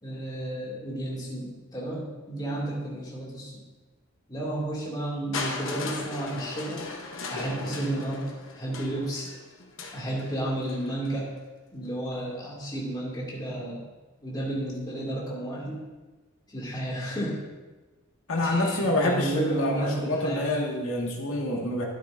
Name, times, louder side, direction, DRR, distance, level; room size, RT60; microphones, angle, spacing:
voice 1, 0.0-3.6 4.3-6.8 7.3-8.3 8.6-9.3 9.9-11.3 11.7-13.9 14.2-15.8 16.5-17.4 18.4-20.5, right 1 dB, 20° left, -5 dB, 2.4 m, -32 dB
Crushing, 5.3-11.2 12.2-12.3, left 3 dB, 65° left, 1.0 m, -38 dB
voice 2, 18.3-21.8, left 1 dB, 80° left, -1 dB, 1.8 m, -27 dB
12.0 x 9.1 x 2.6 m, 1.2 s
head